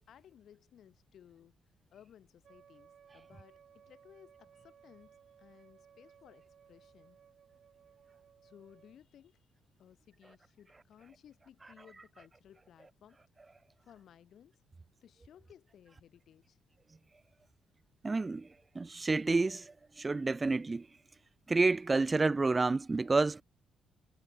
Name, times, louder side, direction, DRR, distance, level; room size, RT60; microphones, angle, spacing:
voice 1, 0.1-1.6 1.9-7.2 8.4-9.5 9.8-13.2 13.8-14.6 15.0-16.6, left 9 dB, 65° left, 3.9 m, -59 dB
Wind instrument woodwind instrument, 2.4-9.0, right 8 dB, 55° right, 4.8 m, -61 dB
voice 2, 18.0-18.5 18.7-20.9 21.5-23.4, right 3 dB, 25° right, 0.8 m, -29 dB
cardioid pair, 90°, 0 cm